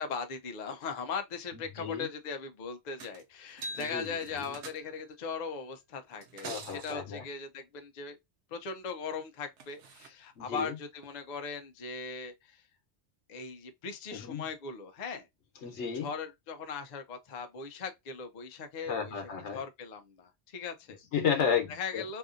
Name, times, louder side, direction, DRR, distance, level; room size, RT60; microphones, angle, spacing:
voice 1, 0.0-8.2 8.5-12.6 13.3-15.3 16.0-19.1 19.5-21.0 21.7-22.2, left 5 dB, 55° left, 0.5 m, -39 dB
voice 2, 1.5-2.1 3.8-4.5 6.4-7.3 10.4-10.7 14.1-14.4 15.6-16.1 18.9-19.6 21.1-22.0, left 7 dB, 80° left, 1.0 m, -33 dB
sound 1, 3.0-3.2 3.5-5.1 6.1-7.0 9.1-9.2 9.6-10.1 11.0-11.1, right 2 dB, 90° right, 1.0 m, -45 dB
2.7 x 2.5 x 2.4 m
omnidirectional pair, 1.2 m